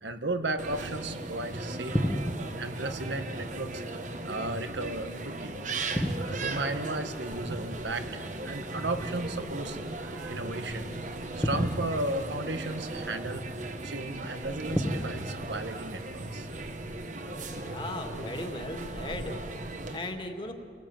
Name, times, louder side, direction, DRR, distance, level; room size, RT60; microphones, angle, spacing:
voice 1, 0.0-2.2 2.5-5.6 6.2-10.9 11.3-13.4 13.8-16.5 19.9-20.0, right 2 dB, 80° right, 7 dB, 1.5 m, -35 dB
sound 1, 0.6-20.0, right 2 dB, 40° right, 1.4 m, -37 dB
sound 2, 1.8-19.4, equal, 10° left, 1.3 m, -38 dB
voice 2, 17.5-20.5, left 1 dB, 25° left, 4 dB, 2.2 m, -38 dB
29.0 x 18.5 x 8.9 m, 2.3 s
head